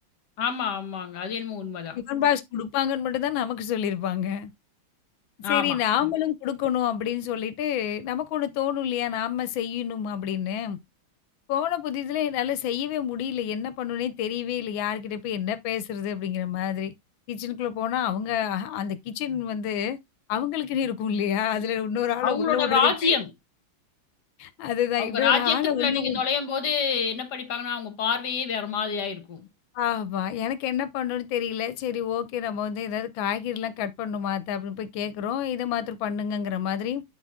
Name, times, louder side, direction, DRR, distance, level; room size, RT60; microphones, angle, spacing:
voice 1, 0.4-2.0 5.4-5.8 22.2-23.3 25.0-29.4, left 6 dB, 60° left, 1.8 m, -27 dB
voice 2, 1.9-4.5 5.5-10.8 11.5-16.9 17.3-20.0 20.3-23.2 24.4-26.2 29.7-37.0, left 9 dB, 85° left, 1.4 m, -28 dB
8.4 x 4.0 x 3.5 m
omnidirectional pair, 2.1 m